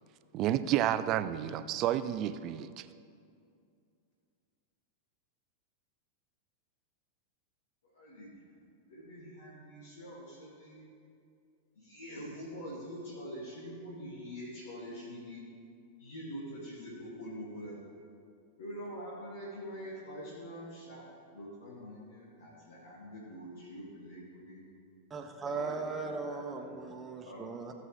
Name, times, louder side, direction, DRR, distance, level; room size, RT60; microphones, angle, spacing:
voice 1, 0.3-2.9, right 12 dB, 35° right, 14 dB, 0.4 m, -30 dB
voice 2, 7.8-8.6 8.9-10.9 11.8-15.4 16.0-17.8 18.6-21.0 21.3-24.6 25.4-26.8 27.2-27.4, equal, 65° left, -7 dB, 2.3 m, -45 dB
voice 3, 25.1-27.7, right 4 dB, 20° right, 4 dB, 1.1 m, -38 dB
17.0 x 7.5 x 3.3 m, 2.4 s
figure-of-eight pair, 90°, 0 cm